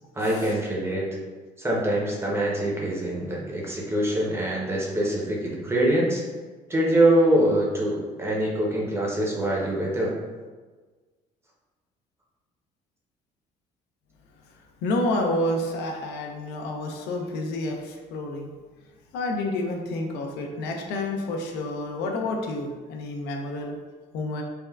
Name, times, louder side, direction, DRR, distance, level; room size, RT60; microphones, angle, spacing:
voice 1, 0.1-1.1 1.6-6.2 6.7-10.1, right 1 dB, 15° right, -3 dB, 0.6 m, -24 dB
voice 2, 14.8-18.5 19.1-23.8 24.1-24.4, left 1 dB, 85° left, 2 dB, 0.4 m, -29 dB
3.4 x 2.1 x 2.2 m, 1.4 s
cardioid pair, 110°, 17 cm